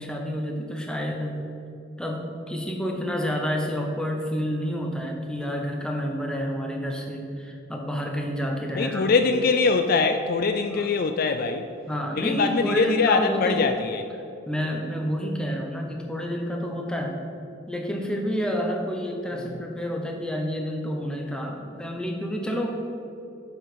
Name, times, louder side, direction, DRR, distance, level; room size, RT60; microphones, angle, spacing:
voice 1, 0.0-1.4 2.0-9.1 10.7-10.8 11.8-13.6 14.5-17.2 17.7-22.8, equal, 5° left, 1 dB, 0.7 m, -29 dB
voice 2, 8.7-11.7 12.1-14.0 19.3-19.6, left 4 dB, 45° left, 7 dB, 0.3 m, -23 dB
7.4 x 5.2 x 5.9 m, 2.7 s
head